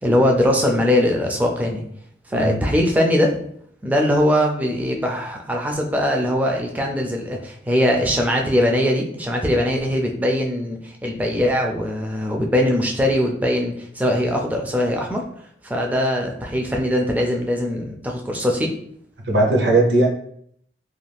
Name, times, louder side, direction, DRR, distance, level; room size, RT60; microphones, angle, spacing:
voice 1, 0.0-1.8 2.3-3.3 3.8-15.2 15.6-18.7, left 1 dB, 10° right, 1 dB, 0.3 m, -21 dB
voice 2, 19.2-20.1, right 2 dB, 70° right, 0 dB, 0.7 m, -17 dB
2.4 x 2.3 x 3.3 m, 0.66 s
head